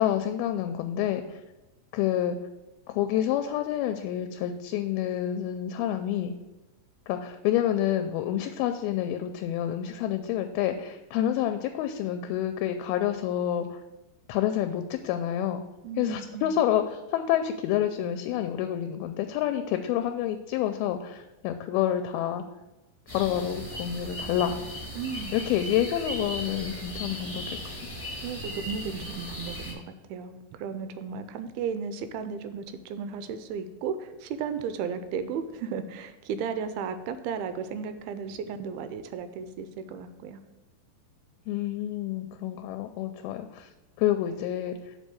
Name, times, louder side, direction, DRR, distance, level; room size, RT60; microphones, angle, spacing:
voice 1, 0.0-1.4 1.9-2.4 2.9-6.3 7.1-13.8 14.3-15.6 16.0-22.4 23.1-24.6 25.3-27.8 41.5-43.7 44.0-44.8, left 11 dB, 85° left, 8 dB, 2.4 m, -28 dB
voice 2, 15.8-16.5 24.9-25.4 28.2-29.8 30.1-40.4, right 6 dB, 85° right, 10 dB, 2.4 m, -34 dB
sound 1, 23.1-29.7, equal, 5° left, 1.6 m, -37 dB
6.3 x 4.8 x 6.7 m, 1.1 s
omnidirectional pair, 4.4 m